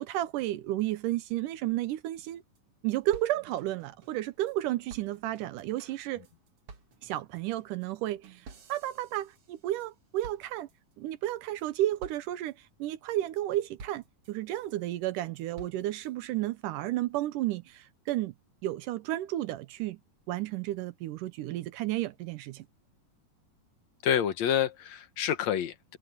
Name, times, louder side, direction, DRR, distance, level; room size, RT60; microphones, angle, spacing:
voice 1, 0.0-2.4 2.8-6.3 7.0-10.7 11.0-18.3 18.6-20.0 20.3-22.7, right 14 dB, 75° right, 2.1 m, -32 dB
sound 1, 2.2-2.3 2.6-2.7 2.9-4.6 4.9-9.9 10.2-10.9 11.4-11.7 12.0-12.5 12.9-13.4 13.8-14.7 15.1-16.1, right 4 dB, 45° right, 2.7 m, -52 dB
voice 2, 24.0-26.0, left 9 dB, 60° left, 2.2 m, -28 dB
omnidirectional pair, 4.2 m